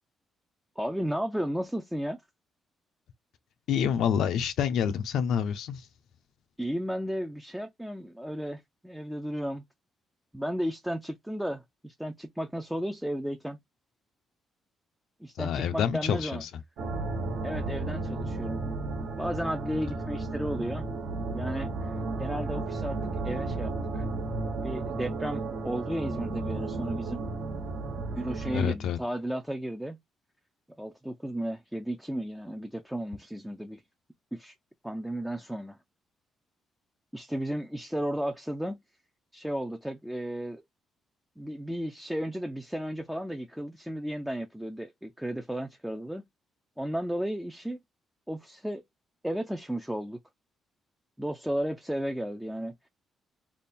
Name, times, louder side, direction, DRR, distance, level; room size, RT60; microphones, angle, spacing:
voice 1, 0.8-2.2 6.6-9.6 10.3-13.6 15.2-16.4 17.4-18.6 19.2-20.9 21.3-21.9 22.2-23.0 23.2-24.1 24.6-27.2 28.0-30.0 30.8-33.8 34.3-34.5 34.8-35.8 37.1-38.8 39.3-40.6 41.4-46.2 46.8-47.8 48.3-48.8 49.2-50.2 51.2-52.8, equal, ahead, 0.4 m, -34 dB
voice 2, 3.7-5.9 15.4-16.5 28.5-29.0, left 8 dB, 80° left, 0.6 m, -27 dB
sound 1, 16.8-28.6, right 3 dB, 80° right, 1.2 m, -33 dB
3.5 x 2.2 x 4.1 m
cardioid pair, 170°, 0 cm